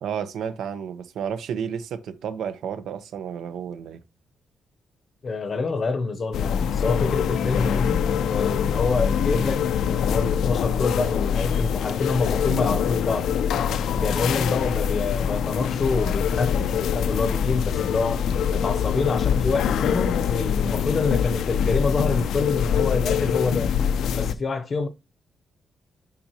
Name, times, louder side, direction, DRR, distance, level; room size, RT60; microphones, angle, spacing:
voice 1, 0.0-4.0, right 8 dB, 85° right, 0.8 m, -31 dB
voice 2, 5.2-8.0 8.3-13.3 13.9-18.2 18.5-23.7 24.1-24.9, left 4 dB, 35° left, 0.7 m, -27 dB
sound 1, 6.3-24.3, left 8 dB, 85° left, 0.5 m, -24 dB
7.5 x 5.2 x 2.8 m
wide cardioid pair, 165°, 0 cm